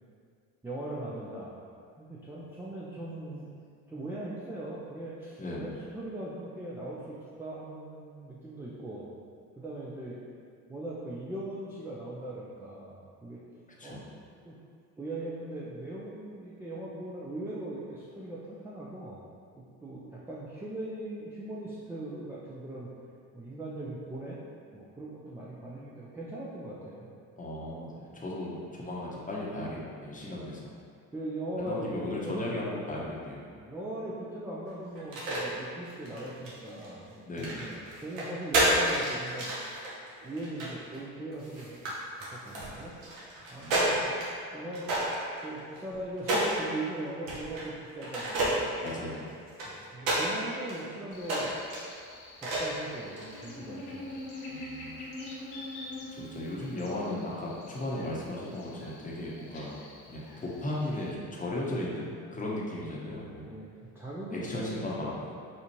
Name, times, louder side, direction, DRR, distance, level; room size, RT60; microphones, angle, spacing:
voice 1, 0.6-1.5 2.0-3.5 3.9-9.1 9.6-10.2 10.7-13.4 13.8-14.0 14.5-14.6 15.0-19.2 19.6-22.9 23.3-24.4 24.7-27.1 30.2-30.5 31.1-32.4 33.6-39.5 40.2-42.9 43.5-44.0 44.5-44.9 45.4-48.6 49.1-49.2 49.6-51.5 52.4-54.0 63.4-65.3, right 1 dB, 5° right, -7 dB, 0.3 m, -40 dB
voice 2, 5.4-5.7 13.8-14.0 27.4-30.7 31.6-33.4 37.2-37.6 43.6-44.1 48.8-49.2 54.5-55.0 56.2-59.8 60.1-63.5 64.3-65.3, left 1 dB, 15° left, -5 dB, 0.8 m, -36 dB
sound 1, 34.9-35.4 35.9-36.9 37.4-41.0 41.4-41.9 42.2-44.3 44.7-46.6 47.3-47.7 48.0-50.3 50.7-50.8 51.2-51.8 52.4-52.8 53.2-53.4, right 1 dB, 70° right, 1.1 m, -30 dB
Buzz, 51.1-61.1, left 1 dB, 60° left, 0.9 m, -45 dB
4.2 x 2.4 x 3.0 m, 2.2 s
hypercardioid pair, 65°, 46 cm